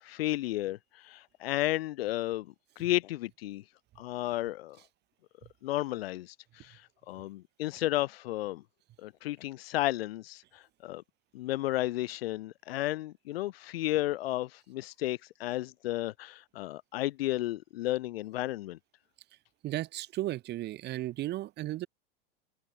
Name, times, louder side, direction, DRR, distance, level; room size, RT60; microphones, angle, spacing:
voice 1, 0.0-2.5 2.8-3.6 4.0-4.8 5.6-8.6 9.0-11.0 11.3-18.8, left 16 dB, 80° left, 0.8 m, -33 dB
voice 2, 19.6-21.9, right 15 dB, 35° right, 0.8 m, -35 dB
open air
hypercardioid pair, 110°, 30 cm